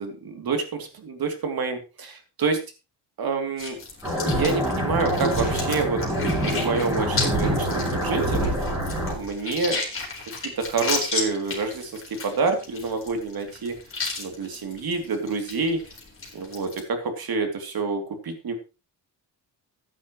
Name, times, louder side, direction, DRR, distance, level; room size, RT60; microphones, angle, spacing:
voice 1, 0.0-2.6 3.2-3.8 4.3-6.0 6.4-8.4 9.1-9.8 10.4-13.7 14.2-15.8 16.3-18.5, right 4 dB, 55° right, 5 dB, 2.9 m, -27 dB
sound 1, 3.6-16.8, left 4 dB, 30° left, 4.0 m, -34 dB
sound 2, 4.0-9.1, right 1 dB, 10° right, 5.5 m, -25 dB
15.0 x 9.8 x 3.1 m, 0.30 s
wide cardioid pair, 140°, 43 cm